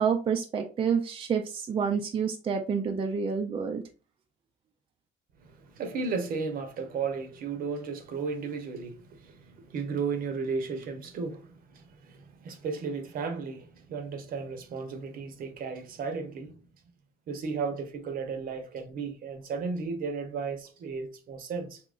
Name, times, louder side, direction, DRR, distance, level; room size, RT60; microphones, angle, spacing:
voice 1, 0.0-3.8, right 6 dB, 30° right, 0.4 m, -28 dB
voice 2, 5.4-16.6 17.3-21.8, right 5 dB, 60° right, 0.8 m, -34 dB
3.6 x 2.9 x 2.4 m
cardioid pair, 110°, 17 cm